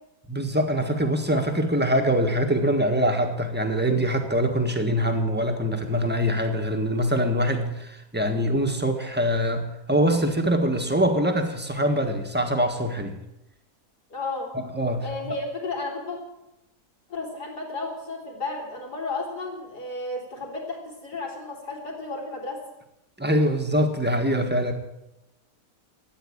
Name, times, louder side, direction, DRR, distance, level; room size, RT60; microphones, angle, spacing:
voice 1, 0.3-13.2 14.5-15.0 23.2-24.7, equal, 5° right, 4 dB, 1.5 m, -24 dB
voice 2, 14.1-14.5 15.0-16.2 17.1-22.6, left 3 dB, 80° left, 0 dB, 3.9 m, -33 dB
13.5 x 9.2 x 8.8 m, 0.89 s
omnidirectional pair, 1.7 m